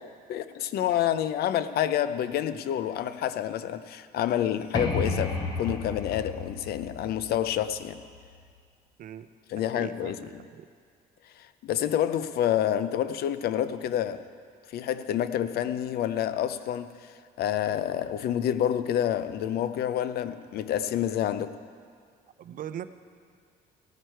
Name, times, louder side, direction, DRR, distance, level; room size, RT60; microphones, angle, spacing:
voice 1, 0.0-8.0 9.5-10.4 11.4-14.2 14.7-17.1 17.4-21.6, left 10 dB, 65° left, 13 dB, 0.6 m, -28 dB
sound 1, 4.7-8.4, left 3 dB, 25° left, 1.5 m, -33 dB
voice 2, 9.6-10.7 22.4-22.9, right 10 dB, 55° right, 12 dB, 0.6 m, -40 dB
16.5 x 9.3 x 4.5 m, 2.1 s
cardioid pair, 110°, 17 cm